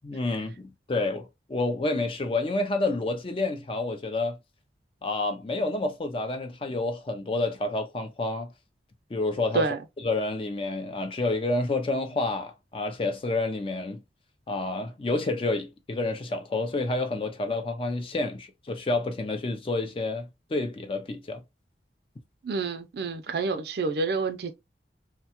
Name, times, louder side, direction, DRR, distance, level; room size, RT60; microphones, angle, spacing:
voice 1, 0.0-4.4 5.0-8.5 9.1-9.7 10.0-14.0 14.5-21.4, left 2 dB, 30° left, 0.4 m, -29 dB
voice 2, 22.4-24.5, right 4 dB, 65° right, 0.5 m, -28 dB
2.7 x 2.2 x 2.8 m
head